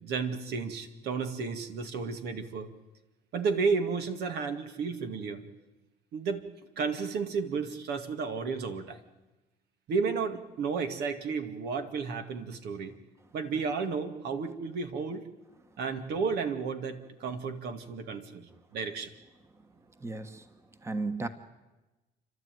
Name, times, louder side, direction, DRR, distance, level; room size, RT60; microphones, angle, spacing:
voice 1, 0.0-2.7 3.3-5.4 6.1-6.4 6.8-9.0 9.9-12.9 13.3-15.2 15.8-19.1, right 5 dB, 75° right, 7 dB, 2.3 m, -32 dB
voice 2, 20.0-20.4 20.8-21.3, right 3 dB, 15° right, 9 dB, 1.3 m, -34 dB
29.5 x 12.5 x 9.3 m, 1.1 s
cardioid pair, 110°, 17 cm